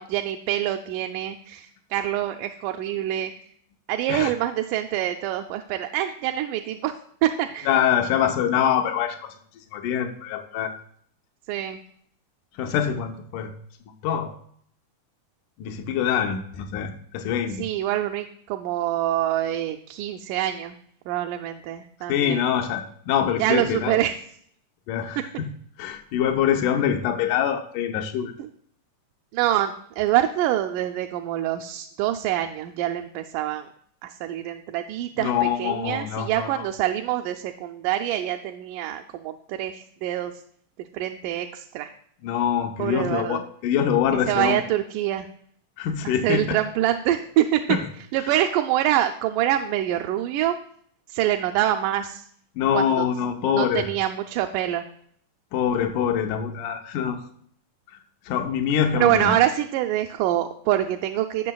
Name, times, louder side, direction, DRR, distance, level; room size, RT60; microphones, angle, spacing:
voice 1, 0.0-3.3 3.9-6.9 7.2-7.7 11.5-11.8 17.6-20.8 21.1-22.4 23.4-24.2 28.4-28.5 29.3-33.7 34.0-40.3 40.9-41.9 42.8-43.4 44.3-45.3 46.0-47.6 48.1-50.6 51.1-52.2 52.7-53.1 53.5-54.8 59.0-61.5, right 12 dB, 85° right, 5 dB, 2.1 m, -25 dB
voice 2, 7.7-9.2 9.7-10.7 12.6-13.5 14.0-14.3 15.6-17.6 22.1-24.0 24.9-25.5 25.8-28.3 35.2-36.7 42.2-44.6 45.8-46.6 47.7-47.8 52.6-53.9 55.5-57.2 58.3-59.4, left 8 dB, 80° left, 5 dB, 2.3 m, -24 dB
18.0 x 6.4 x 2.3 m, 0.62 s
omnidirectional pair, 3.6 m